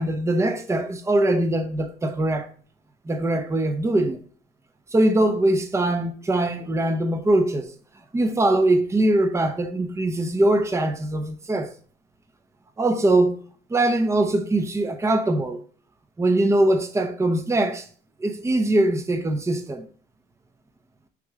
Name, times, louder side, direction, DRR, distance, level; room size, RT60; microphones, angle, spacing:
voice 1, 0.0-2.5 3.1-4.2 4.9-7.7 8.1-11.7 12.8-13.4 13.7-15.6 16.2-17.8 18.2-19.9, right 1 dB, 15° right, 0.8 m, -22 dB
9.3 x 3.2 x 3.6 m
cardioid pair, 110°, 17 cm